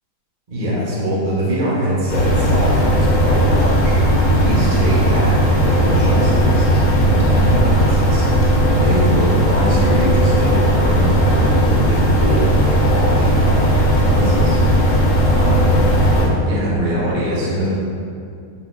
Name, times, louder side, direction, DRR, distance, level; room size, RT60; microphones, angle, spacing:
voice 1, 0.5-14.8 15.3-15.8 16.1-17.7, equal, 40° right, -7 dB, 0.6 m, -23 dB
sound 1, 2.1-16.3, equal, 65° left, 1.1 m, -16 dB
4.7 x 4.0 x 2.2 m, 2.4 s
omnidirectional pair, 1.8 m